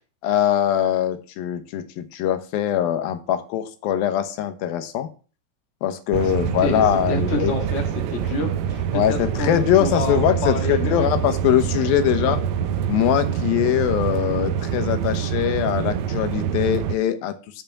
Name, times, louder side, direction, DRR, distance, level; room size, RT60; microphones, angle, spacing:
voice 1, 0.2-5.1 5.8-7.7 8.9-12.4 12.9-17.3, left 11 dB, 90° left, 9 dB, 2.8 m, -22 dB
sound 1, 6.1-17.0, right 8 dB, 85° right, 1.5 m, -25 dB
voice 2, 6.6-11.1 12.2-12.4, left 2 dB, 30° left, 2 dB, 1.3 m, -29 dB
6.6 x 5.6 x 7.2 m, 0.37 s
omnidirectional pair, 4.0 m